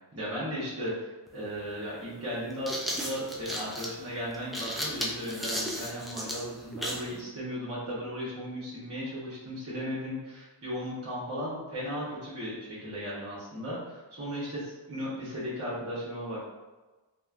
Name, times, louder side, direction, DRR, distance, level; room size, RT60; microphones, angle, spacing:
voice 1, 0.1-16.5, equal, 30° right, -8 dB, 0.9 m, -36 dB
sound 1, 1.3-1.4 2.3-7.1, equal, ahead, 0.3 m, -34 dB
3.0 x 2.1 x 2.4 m, 1.2 s
wide cardioid pair, 60°, 47 cm